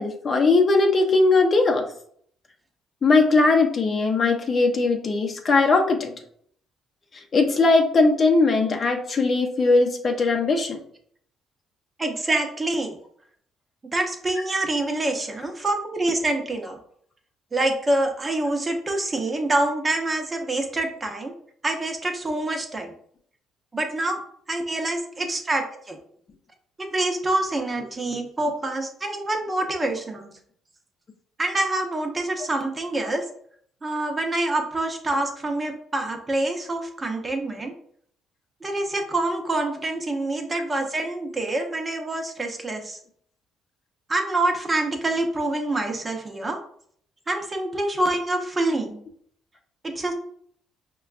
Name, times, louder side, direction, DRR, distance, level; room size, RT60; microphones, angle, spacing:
voice 1, 0.0-1.9 3.0-6.2 7.3-10.8, left 3 dB, 40° left, 3 dB, 0.6 m, -19 dB
voice 2, 12.0-13.0 13.9-16.8 17.5-21.3 21.6-22.9 23.7-24.2 24.5-26.0 26.8-30.3 31.4-33.2 33.8-37.7 38.6-43.0 44.1-46.6 47.3-49.0 49.8-50.1, right 2 dB, 25° right, 3 dB, 0.7 m, -26 dB
5.1 x 2.3 x 2.4 m, 0.62 s
cardioid pair, 85°, 0 cm